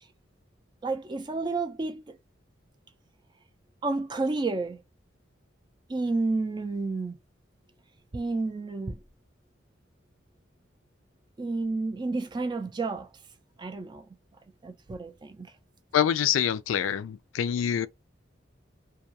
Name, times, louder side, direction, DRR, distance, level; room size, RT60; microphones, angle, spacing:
voice 1, 0.8-2.2 3.8-4.8 5.9-7.2 8.1-9.0 11.4-13.1 13.6-14.1 14.6-15.5, right 3 dB, 25° right, 0.3 m, -30 dB
voice 2, 15.9-17.9, left 9 dB, 90° left, 0.3 m, -26 dB
2.3 x 2.2 x 2.7 m
head